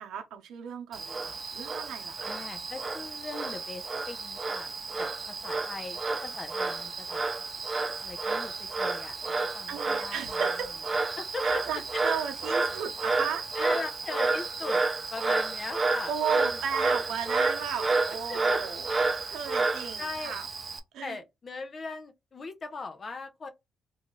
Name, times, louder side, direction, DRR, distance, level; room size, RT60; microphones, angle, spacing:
voice 1, 0.0-2.5 9.7-10.8 11.4-13.5 16.1-19.0 19.3-20.5 20.9-21.2, right 7 dB, 80° right, 0.6 m, -35 dB
Frog, 0.9-20.8, right 3 dB, 30° right, 0.5 m, -30 dB
voice 2, 2.2-4.7 5.0-7.2 8.0-10.4 11.2-11.6 13.5-14.8 15.1-16.6 18.3-18.6 18.9-19.0 19.5-19.7 20.0-20.4 21.0-23.5, left 3 dB, 40° left, 0.6 m, -40 dB
2.7 x 2.3 x 3.0 m
cardioid pair, 90°, 0 cm